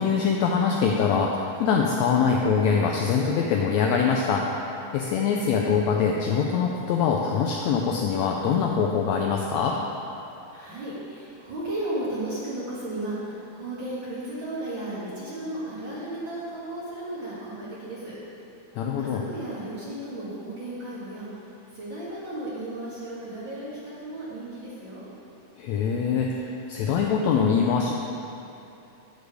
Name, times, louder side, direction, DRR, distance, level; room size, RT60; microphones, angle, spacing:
voice 1, 0.0-4.4 4.9-9.8 18.7-19.2 25.6-27.9, left 6 dB, 85° left, 0 dB, 1.6 m, -23 dB
voice 2, 10.5-18.2 19.0-25.1, right 1 dB, 45° right, -8 dB, 1.8 m, -34 dB
8.4 x 6.5 x 4.7 m, 2.8 s
omnidirectional pair, 3.7 m